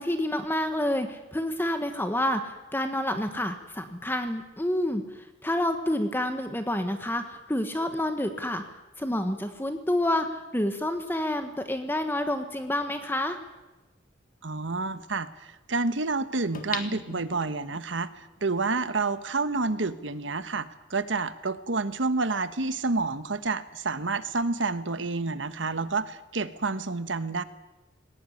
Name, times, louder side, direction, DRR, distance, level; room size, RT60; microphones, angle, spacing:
voice 1, 0.0-8.6 9.0-13.4, left 1 dB, 10° left, 7 dB, 1.2 m, -28 dB
voice 2, 14.4-27.4, right 3 dB, 75° right, 12 dB, 1.2 m, -29 dB
sound 1, 16.5-17.9 18.4-18.5, left 5 dB, 45° left, 2.0 m, -37 dB
20.5 x 18.5 x 9.7 m, 1.1 s
head